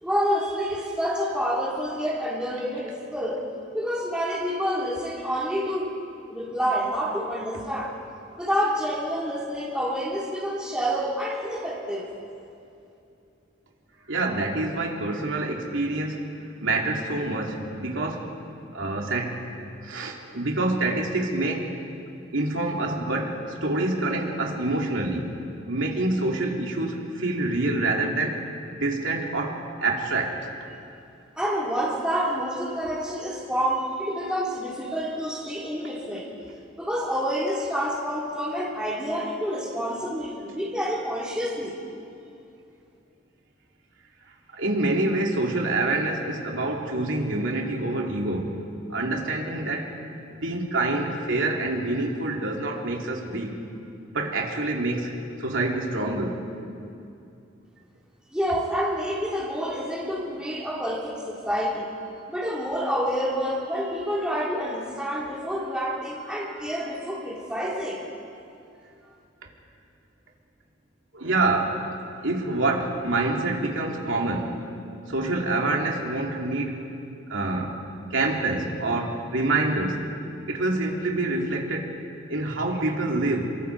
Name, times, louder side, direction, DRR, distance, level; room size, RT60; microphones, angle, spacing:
voice 1, 0.0-3.5 3.7-5.9 6.3-8.0 8.4-12.1 31.4-36.3 36.8-41.8 58.3-61.9 62.3-68.0, equal, 5° right, -4 dB, 3.1 m, -28 dB
voice 2, 14.1-16.2 16.6-18.3 18.7-19.4 19.8-21.7 22.3-25.3 25.7-28.4 28.8-30.4 44.5-48.6 48.9-49.9 50.3-53.6 54.1-55.1 55.4-56.4 71.1-71.8 72.2-74.5 75.1-76.8 77.3-77.8 78.1-80.0 80.5-81.9 82.3-83.5, right 2 dB, 90° right, -1 dB, 3.0 m, -26 dB
29.0 x 24.0 x 4.8 m, 2.6 s
head